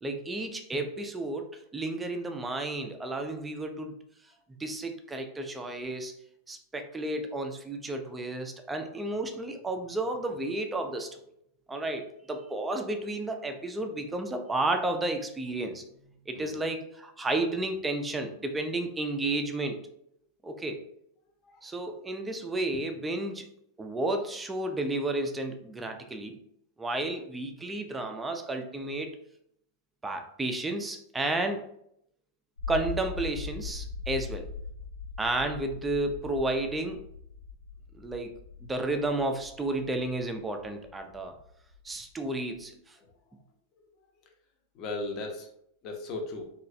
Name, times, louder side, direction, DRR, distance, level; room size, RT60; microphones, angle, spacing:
voice 1, 0.0-4.0 4.6-6.1 6.5-11.2 11.7-19.8 20.4-20.8 21.6-23.5 23.8-26.4 26.8-29.1 30.0-31.6 32.7-34.5 35.2-37.0 37.9-38.3 38.6-41.3 41.8-43.0, right 2 dB, 10° right, 5 dB, 0.4 m, -32 dB
voice 2, 16.3-16.7 21.4-21.7 43.0-43.1 43.7-43.8 44.7-45.5 45.8-46.5, left 2 dB, 35° left, 2 dB, 0.6 m, -37 dB
sound 1, 32.6-42.7, left 5 dB, 80° left, 0.3 m, -41 dB
3.0 x 2.3 x 2.6 m, 0.71 s
figure-of-eight pair, 90°, 0 cm